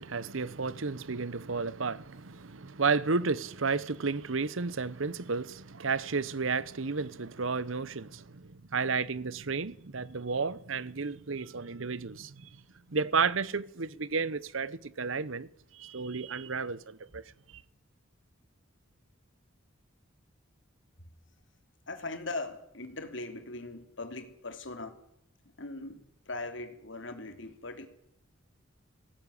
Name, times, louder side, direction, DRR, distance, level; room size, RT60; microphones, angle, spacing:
voice 1, 0.0-12.5 12.9-17.2 17.5-17.6, right 4 dB, 75° right, 0.9 m, -32 dB
voice 2, 21.9-25.0 25.6-27.9, left 2 dB, 65° left, 3.1 m, -40 dB
19.5 x 17.0 x 9.9 m
head